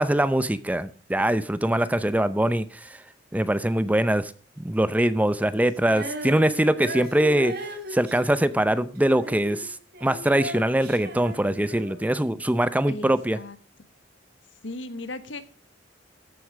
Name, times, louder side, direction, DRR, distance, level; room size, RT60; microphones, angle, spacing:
voice 1, 0.0-2.7 3.3-4.3 4.6-7.5 7.9-9.7 10.0-13.4, right 1 dB, 10° right, 14 dB, 0.6 m, -23 dB
Female singing, 5.8-12.1, equal, 55° right, 3.4 m, -37 dB
voice 2, 12.9-13.6 14.6-15.5, left 2 dB, 90° left, 12 dB, 1.3 m, -36 dB
14.0 x 8.2 x 5.0 m, 0.36 s
head